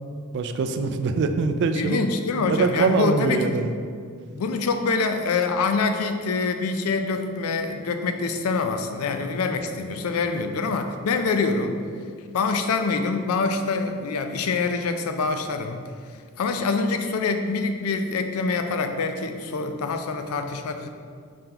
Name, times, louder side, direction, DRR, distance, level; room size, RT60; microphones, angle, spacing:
voice 1, 0.3-2.1 2.5-3.7, right 4 dB, 55° right, 8 dB, 0.3 m, -23 dB
voice 2, 1.7-3.7 4.3-11.8 12.3-15.8 16.4-20.9, left 4 dB, 90° left, 7 dB, 0.4 m, -25 dB
5.0 x 3.7 x 2.9 m, 2.1 s
head